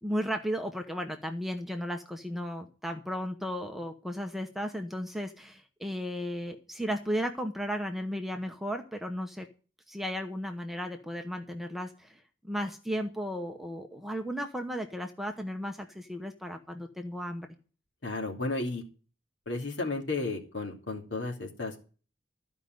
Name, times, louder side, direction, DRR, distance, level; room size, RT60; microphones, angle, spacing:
voice 1, 0.0-9.5 9.9-17.5, equal, ahead, 4 dB, 0.9 m, -35 dB
voice 2, 18.0-18.8 19.5-21.8, left 3 dB, 65° left, 1 dB, 2.7 m, -33 dB
14.0 x 5.3 x 9.3 m, 0.37 s
head